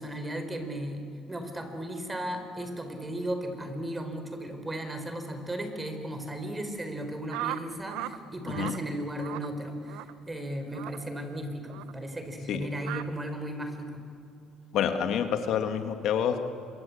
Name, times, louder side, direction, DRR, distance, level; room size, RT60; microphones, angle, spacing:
voice 1, 0.0-14.0, right 1 dB, 15° right, 7 dB, 4.5 m, -35 dB
sound 1, 7.3-8.2 8.5-8.8 9.2-9.5 9.9-10.1 10.7-11.0 11.7-11.9 12.8-13.1, right 16 dB, 85° right, 0.9 m, -36 dB
voice 2, 14.7-16.4, left 8 dB, 65° left, 7 dB, 1.9 m, -28 dB
27.0 x 24.0 x 8.5 m, 2.6 s
supercardioid pair, 90°, 0 cm